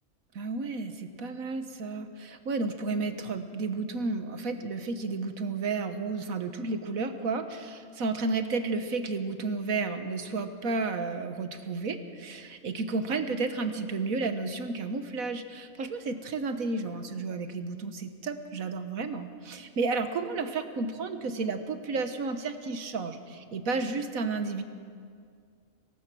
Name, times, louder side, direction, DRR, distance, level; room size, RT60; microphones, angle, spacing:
voice 1, 0.4-24.6, right 3 dB, 75° right, 8 dB, 1.6 m, -32 dB
24.5 x 18.0 x 6.2 m, 2.2 s
omnidirectional pair, 1.5 m